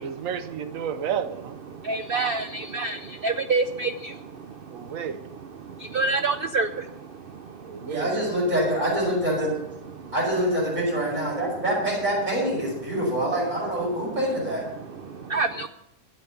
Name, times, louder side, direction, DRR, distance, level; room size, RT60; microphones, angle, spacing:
voice 1, 0.0-1.6 4.7-5.2 7.7-8.1, right 8 dB, 60° right, 11 dB, 1.1 m, -31 dB
voice 2, 1.7-7.9 9.9-10.1 14.7-15.7, right 3 dB, 90° right, 9 dB, 0.5 m, -29 dB
voice 3, 7.9-9.6 10.1-14.6 15.3-15.4, right 1 dB, 25° right, -5 dB, 5.8 m, -25 dB
12.5 x 8.0 x 6.8 m, 0.82 s
omnidirectional pair, 1.7 m